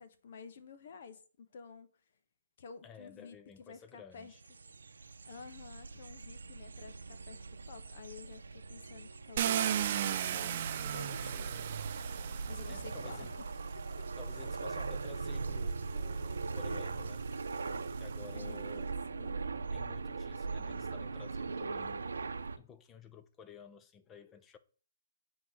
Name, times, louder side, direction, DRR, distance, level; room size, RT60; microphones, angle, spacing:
voice 1, 0.0-1.9 2.6-4.3 5.2-11.7 12.5-13.5 13.7-14.1 18.3-19.7, left 6 dB, 60° left, 1.3 m, -52 dB
voice 2, 2.8-4.4 12.7-13.3 14.2-17.3 18.0-18.9 19.7-22.0 22.6-24.6, left 7 dB, 20° left, 0.8 m, -53 dB
sound 1, 4.2-22.6, right 4 dB, 90° right, 0.8 m, -40 dB
Car, 9.4-13.5 14.4-14.5 15.0-18.3, right 10 dB, 50° right, 0.7 m, -37 dB
8.4 x 4.1 x 6.3 m
hypercardioid pair, 145°, 0 cm